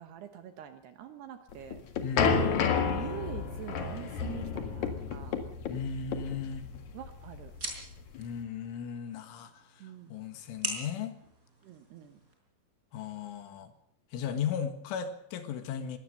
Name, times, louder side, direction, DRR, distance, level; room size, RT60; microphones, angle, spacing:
voice 1, 0.0-1.8 2.9-5.4 6.9-7.5 9.8-10.1 11.6-12.2, right 11 dB, 70° right, 9 dB, 2.7 m, -45 dB
sound 1, 1.5-8.4, left 5 dB, 55° left, 2.2 m, -31 dB
voice 2, 2.0-2.8 5.7-6.7 8.2-9.8 10.1-11.2 12.9-13.7 14.1-16.0, left 7 dB, 75° left, 9 dB, 4.1 m, -36 dB
sound 2, 6.3-12.3, right 2 dB, 15° right, 5.0 m, -44 dB
22.5 x 17.5 x 6.8 m, 0.66 s
omnidirectional pair, 5.8 m